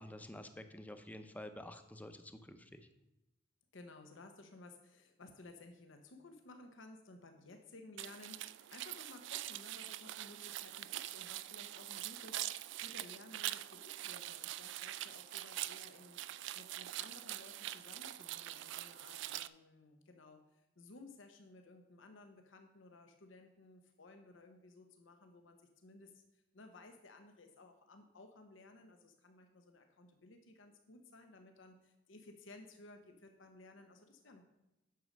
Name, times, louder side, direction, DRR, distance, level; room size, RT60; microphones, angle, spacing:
voice 1, 0.0-2.9, left 1 dB, 10° left, 8 dB, 0.6 m, -50 dB
voice 2, 3.7-34.4, left 2 dB, 80° left, 5 dB, 0.9 m, -57 dB
sound 1, 8.0-19.5, right 14 dB, 65° right, 0.3 m, -44 dB
9.3 x 6.5 x 5.2 m, 0.96 s
head